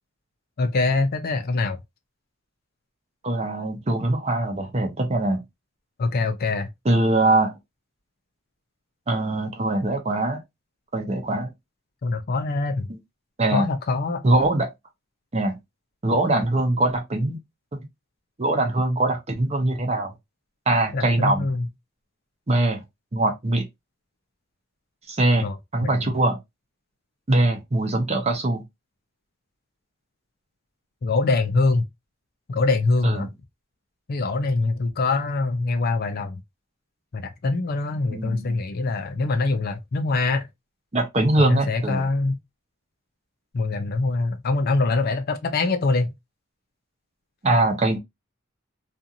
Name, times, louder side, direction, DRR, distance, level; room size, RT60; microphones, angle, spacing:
voice 1, 0.6-1.8 6.0-6.7 12.0-12.9 13.5-14.2 20.9-21.7 25.4-25.6 25.8-25.9 31.0-31.9 32.5-33.3 34.1-36.4 37.1-40.5 41.4-42.4 43.5-46.1, left 3 dB, 45° left, 0.4 m, -24 dB
voice 2, 3.2-5.4 6.8-7.5 9.1-10.4 10.9-11.5 12.9-13.0 13.4-13.7 14.2-14.7 15.3-15.6 16.0-17.4 17.7-17.9 18.4-20.1 20.7-21.5 22.5-22.8 23.1-23.7 25.1-26.4 27.3-28.6 33.0-33.3 38.1-38.6 40.9-42.1 47.4-48.0, right 2 dB, 30° right, 0.7 m, -22 dB
2.5 x 2.5 x 2.7 m
head